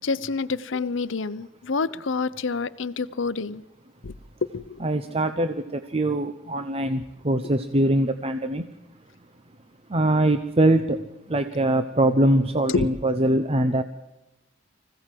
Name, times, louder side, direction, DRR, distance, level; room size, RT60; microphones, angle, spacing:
voice 1, 0.0-3.6 4.0-4.1 4.5-4.8 12.7-12.9, left 4 dB, 70° left, 0.7 m, -28 dB
voice 2, 4.8-8.6 9.9-10.9 11.3-13.8, right 1 dB, 30° right, 0.8 m, -22 dB
25.0 x 16.0 x 7.6 m
head